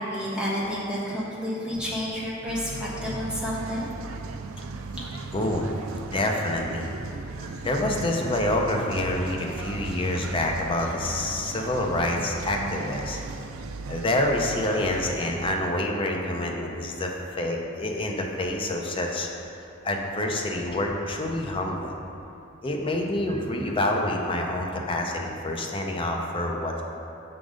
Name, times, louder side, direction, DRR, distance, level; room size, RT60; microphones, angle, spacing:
voice 1, 0.0-3.9 4.9-5.0, equal, 5° right, -8 dB, 1.3 m, -30 dB
sound 1, 2.5-15.5, right 3 dB, 85° right, 0.4 m, -37 dB
voice 2, 5.3-5.7 5.9-6.9 7.4-13.2 13.9-17.1 17.4-19.3 19.8-21.9 22.6-26.8, left 1 dB, 25° left, 1 dB, 0.6 m, -27 dB
6.1 x 3.9 x 5.0 m, 2.7 s
head